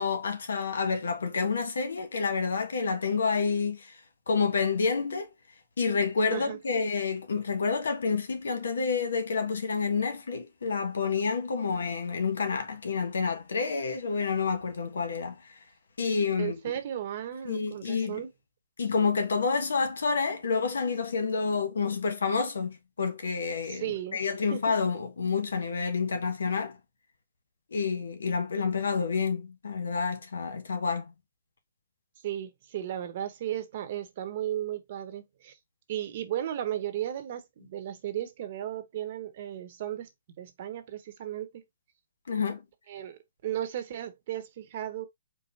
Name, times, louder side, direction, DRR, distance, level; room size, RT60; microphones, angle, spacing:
voice 1, 0.0-3.9 4.3-5.3 5.8-15.4 16.0-16.6 17.4-18.2 18.8-23.9 24.1-26.8 27.7-31.1 42.3-42.6, left 5 dB, 90° left, 1.3 m, -29 dB
voice 2, 16.4-18.3 23.7-24.2 24.5-24.7 32.2-35.6 35.9-40.1 40.4-41.6 42.9-45.1, right 11 dB, 45° right, 1.0 m, -35 dB
4.8 x 2.2 x 4.1 m
hypercardioid pair, 155°, 0 cm